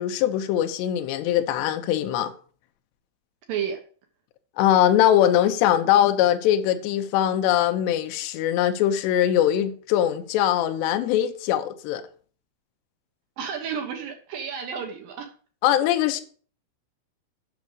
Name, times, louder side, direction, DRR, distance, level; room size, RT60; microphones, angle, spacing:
voice 1, 0.0-2.3 4.6-12.0 15.6-16.2, left 11 dB, 75° left, 2.8 m, -21 dB
voice 2, 3.5-3.8 13.4-15.3, right 7 dB, 70° right, 2.2 m, -31 dB
8.5 x 6.6 x 6.4 m
omnidirectional pair, 5.6 m